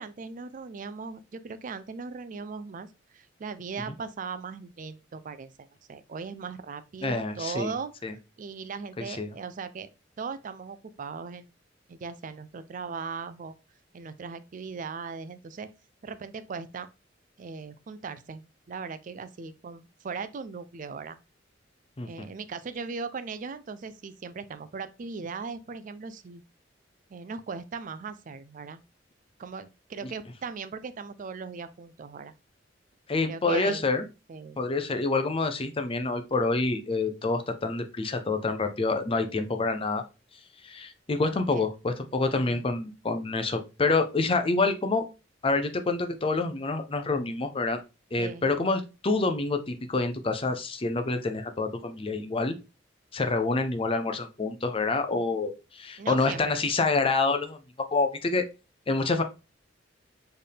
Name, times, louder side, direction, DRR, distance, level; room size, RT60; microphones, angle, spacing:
voice 1, 0.0-2.9 3.1-7.9 8.4-9.9 10.2-11.5 11.9-13.5 13.9-15.7 16.0-16.9 17.4-21.2 22.0-26.4 27.1-28.8 29.4-32.3 33.2-33.9 34.3-34.6 41.5-41.7 42.4-42.6 48.2-48.5 56.0-56.6, right 5 dB, 45° right, 0.4 m, -38 dB
voice 2, 7.0-7.7 8.0-8.1 9.0-9.3 22.0-22.3 33.1-34.0 34.6-40.0 40.6-45.0 45.4-47.8 48.1-52.5 53.1-57.6 57.9-58.4 58.9-59.2, left 3 dB, 30° left, 0.6 m, -27 dB
4.5 x 3.3 x 3.4 m
head